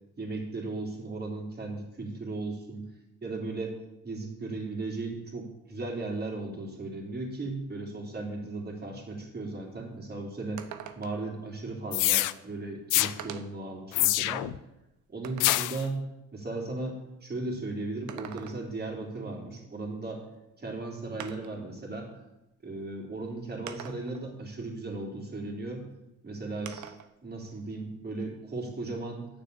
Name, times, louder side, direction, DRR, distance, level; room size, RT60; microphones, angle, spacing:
voice 1, 0.2-2.9 3.2-3.8 4.0-10.7 11.0-14.5 15.1-16.0 16.3-20.2 20.6-22.2 22.6-25.8 26.2-26.9 27.2-29.3, right 2 dB, 30° right, 0 dB, 3.6 m, -36 dB
sound 1, 9.6-9.7 10.1-10.2 10.6-11.3 12.4-12.5 13.2-13.7 14.2-15.7 17.9-18.9 20.3-20.4 21.2-21.7 22.7-22.8 23.7-24.3 26.7-27.1 27.5-28.6, right 9 dB, 75° right, 1.0 m, -44 dB
sound 2, 11.9-12.3 12.9-13.1 13.9-14.6 15.4-15.8, left 17 dB, 90° left, 0.5 m, -25 dB
9.7 x 6.7 x 8.3 m, 0.93 s
cardioid pair, 90°, 30 cm